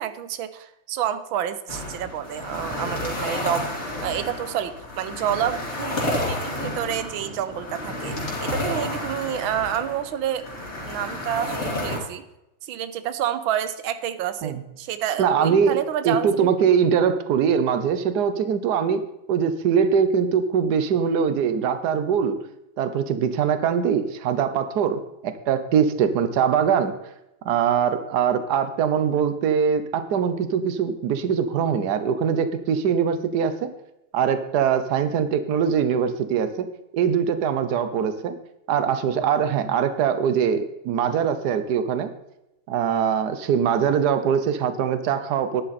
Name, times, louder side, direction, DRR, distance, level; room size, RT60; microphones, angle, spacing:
voice 1, 0.0-3.7 4.0-6.0 6.3-10.5 10.8-12.2 12.6-16.5, right 10 dB, 85° right, 12 dB, 1.6 m, -29 dB
sound 1, 1.7-12.0, left 1 dB, 35° left, 2.8 m, -31 dB
voice 2, 15.2-15.8 16.0-19.0 19.3-22.4 22.8-26.9 27.4-33.7 34.1-36.7 36.9-38.4 38.7-42.1 42.7-45.6, right 7 dB, 60° right, 11 dB, 1.4 m, -22 dB
12.0 x 10.5 x 4.2 m, 0.88 s
omnidirectional pair, 2.1 m